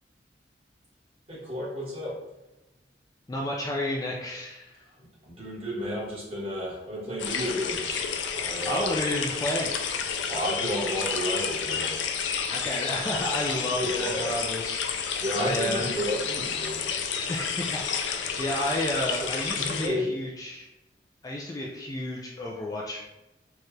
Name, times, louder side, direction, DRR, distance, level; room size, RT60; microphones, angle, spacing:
voice 1, 1.3-2.1 5.2-9.0 10.3-11.9 13.7-14.3 15.2-16.9 19.2-19.3 19.6-20.1, equal, 30° right, -8 dB, 1.4 m, -32 dB
voice 2, 3.3-4.8 8.7-9.7 12.5-15.8 17.3-20.7 21.2-23.0, left 1 dB, 20° left, -2 dB, 0.3 m, -31 dB
sound 1, 7.2-19.9, left 6 dB, 85° left, 0.4 m, -30 dB
4.5 x 2.3 x 3.2 m, 0.96 s
head